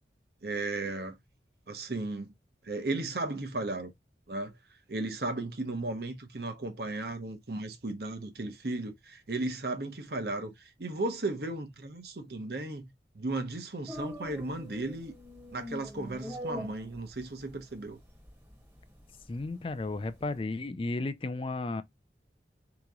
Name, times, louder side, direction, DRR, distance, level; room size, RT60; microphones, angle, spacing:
voice 1, 0.4-1.2 1.7-2.3 2.6-3.9 4.3-4.5 4.9-15.1 15.5-18.0, right 2 dB, 60° right, 0.9 m, -35 dB
sound 1, 13.9-20.4, equal, 10° right, 0.9 m, -44 dB
voice 2, 19.3-21.8, left 2 dB, 30° left, 0.4 m, -33 dB
3.8 x 3.0 x 3.5 m
head